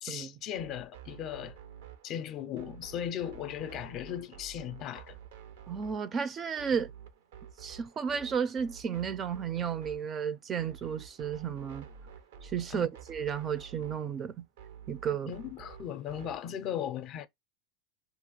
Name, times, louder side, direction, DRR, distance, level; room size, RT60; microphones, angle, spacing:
voice 1, 0.0-1.6 2.0-5.2 12.7-12.9 15.3-17.3, left 10 dB, 45° left, 0.4 m, -37 dB
sound 1, 0.6-16.5, right 8 dB, 80° right, 0.5 m, -50 dB
voice 2, 5.7-6.9 7.6-11.9 12.4-14.4 14.9-15.3, right 7 dB, 30° right, 0.4 m, -33 dB
2.4 x 2.3 x 3.0 m
supercardioid pair, 115°, 0 cm